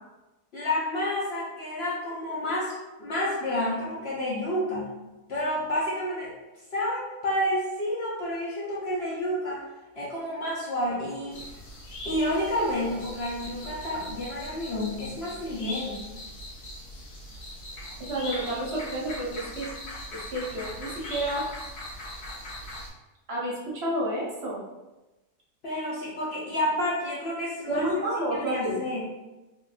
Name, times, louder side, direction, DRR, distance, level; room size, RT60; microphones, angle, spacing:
voice 1, 0.5-5.0 5.3-6.3 6.7-9.6 10.0-11.4 12.0-16.1 25.6-27.9 28.2-29.0, left 1 dB, 55° left, -6 dB, 0.7 m, -30 dB
sound 1, 11.3-22.9, left 1 dB, 80° left, 1.4 m, -40 dB
voice 2, 18.0-19.7 20.3-21.5 23.3-24.6 27.7-28.8, right 1 dB, 50° right, -6 dB, 1.1 m, -30 dB
3.5 x 2.5 x 2.4 m, 1.1 s
omnidirectional pair, 1.7 m